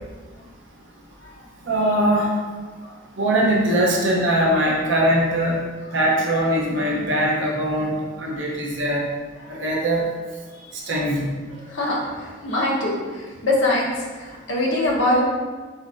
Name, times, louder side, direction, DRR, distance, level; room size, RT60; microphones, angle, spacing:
voice 1, 1.7-2.3 3.2-5.6 5.9-9.0 9.5-10.0 10.9-11.3, right 1 dB, 65° right, -2 dB, 0.7 m, -21 dB
voice 2, 11.5-15.2, left 1 dB, 65° left, -4 dB, 1.0 m, -23 dB
4.1 x 4.1 x 2.5 m, 1.4 s
head